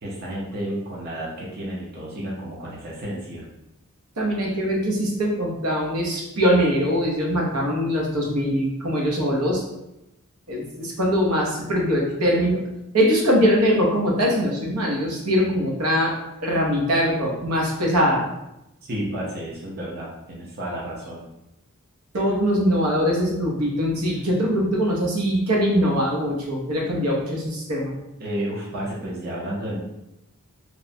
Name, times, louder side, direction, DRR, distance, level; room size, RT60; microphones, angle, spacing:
voice 1, 0.0-3.5 18.9-21.2 28.2-29.8, right 1 dB, 45° right, -4 dB, 0.5 m, -31 dB
voice 2, 4.2-9.6 10.5-12.6 12.9-16.1 16.4-18.2 22.1-27.9, equal, 85° right, -2 dB, 0.7 m, -22 dB
3.0 x 2.0 x 2.6 m, 0.89 s
head